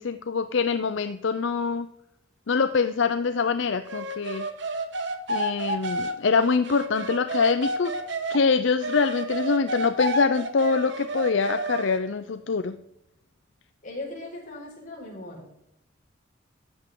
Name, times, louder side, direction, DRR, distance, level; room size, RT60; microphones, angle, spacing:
voice 1, 0.0-1.9 2.5-4.4 5.3-7.9 8.3-12.8, left 5 dB, 65° left, 10 dB, 0.5 m, -24 dB
sound 1, 3.9-8.4 8.8-12.0, right 1 dB, 60° right, 1.3 m, -30 dB
voice 2, 13.8-15.5, left 2 dB, 40° left, -4 dB, 4.9 m, -38 dB
13.0 x 8.9 x 3.8 m, 0.80 s
head